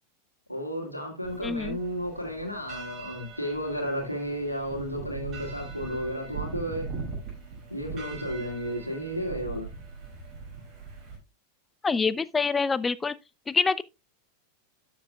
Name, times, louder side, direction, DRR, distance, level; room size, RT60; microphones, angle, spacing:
voice 1, 0.5-6.9 7.7-9.7, equal, 85° left, 2.1 m, -33 dB
sound 1, 1.2-11.2, right 5 dB, 35° right, 5.5 m, -40 dB
voice 2, 1.4-1.8 11.8-13.1 13.5-13.8, left 4 dB, 15° left, 0.5 m, -26 dB
12.0 x 7.7 x 2.2 m
figure-of-eight pair, 90°, 0 cm